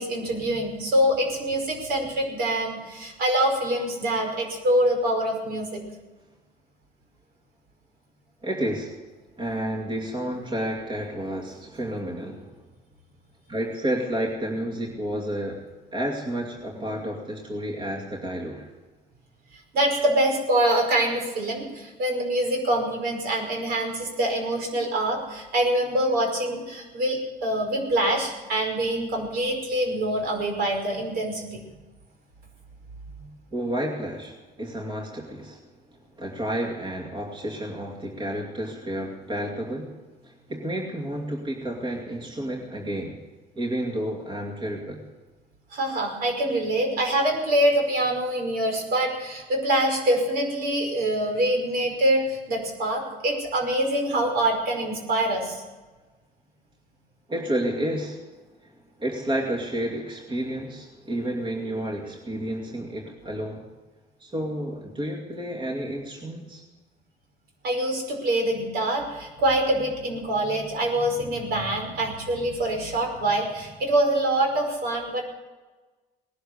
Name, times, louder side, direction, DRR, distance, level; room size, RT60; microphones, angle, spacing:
voice 1, 0.0-5.8 19.7-31.6 45.7-55.6 67.6-75.2, right 1 dB, 70° right, 2 dB, 5.3 m, -25 dB
voice 2, 8.4-9.0 9.4-12.6 13.5-15.6 15.9-18.7 33.5-35.7 36.2-40.0 40.2-43.2 43.6-45.0 57.3-58.2 58.6-58.7 59.0-63.7 64.2-66.6, right 1 dB, 30° right, 0 dB, 2.5 m, -30 dB
19.0 x 11.5 x 6.6 m, 1.2 s
cardioid pair, 110°, 17 cm